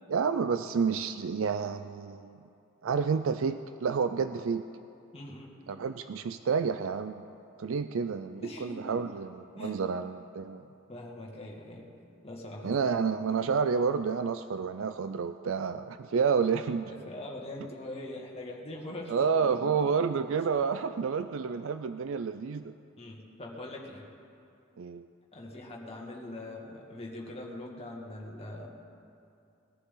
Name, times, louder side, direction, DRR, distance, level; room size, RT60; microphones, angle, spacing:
voice 1, 0.1-2.4 2.8-4.7 5.7-7.2 7.6-10.7 12.6-16.9 19.1-22.7 24.8-25.1, right 6 dB, 65° right, 10 dB, 0.4 m, -29 dB
voice 2, 5.1-5.5 8.4-9.1 9.6-9.8 10.9-11.9 12.2-12.9 13.4-13.5 16.9-19.9 21.0-21.2 23.0-24.0 25.3-28.7, left 1 dB, 30° left, -2 dB, 2.0 m, -42 dB
21.5 x 14.0 x 3.8 m, 2.6 s
head